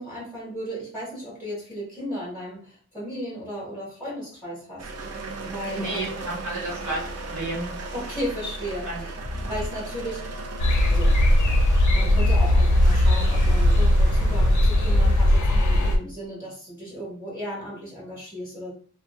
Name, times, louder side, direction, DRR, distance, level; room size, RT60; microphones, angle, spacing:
voice 1, 0.0-5.1 5.4-6.3 7.9-10.5 10.8-11.2 11.9-18.7, equal, 5° right, -9 dB, 1.3 m, -35 dB
sound 1, 4.8-15.7, right 2 dB, 60° right, 0.5 m, -37 dB
voice 2, 5.8-7.7 8.9-9.1, right 2 dB, 85° right, -3 dB, 1.0 m, -32 dB
sound 2, 9.2-9.7 11.1-11.6 12.9-15.7, left 1 dB, 20° left, 0.4 m, -32 dB
sound 3, 10.6-16.0, left 1 dB, 85° left, 0.5 m, -18 dB
2.7 x 2.0 x 2.2 m, 0.43 s
wide cardioid pair, 90°, 29 cm